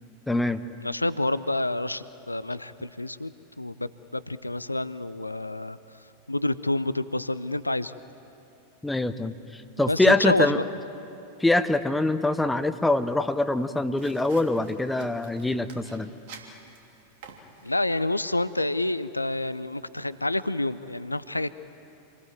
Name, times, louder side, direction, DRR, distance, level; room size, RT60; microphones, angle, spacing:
voice 1, 0.3-0.6 8.8-10.6 11.4-16.1, left 2 dB, 5° left, 10 dB, 1.0 m, -24 dB
voice 2, 0.8-5.8 6.3-7.9 9.9-10.6 17.6-21.5, left 2 dB, 85° left, 15 dB, 0.6 m, -28 dB
sound 1, 13.9-18.0, right 5 dB, 50° right, 3.1 m, -50 dB
27.0 x 20.5 x 9.2 m, 3.0 s
figure-of-eight pair, 90°, 0 cm